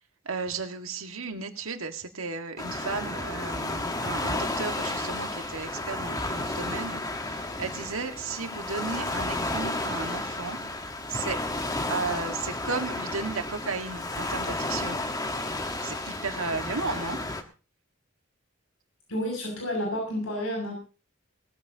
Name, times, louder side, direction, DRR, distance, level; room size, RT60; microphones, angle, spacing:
voice 1, 0.2-10.6 11.1-11.4 11.9-15.0 15.8-17.2, right 4 dB, 75° right, 6 dB, 1.7 m, -34 dB
Waves surf, 2.6-17.4, left 2 dB, 20° left, 1.3 m, -32 dB
voice 2, 19.1-20.7, equal, 80° left, 0 dB, 6.5 m, -30 dB
19.5 x 14.5 x 2.8 m, 0.33 s
head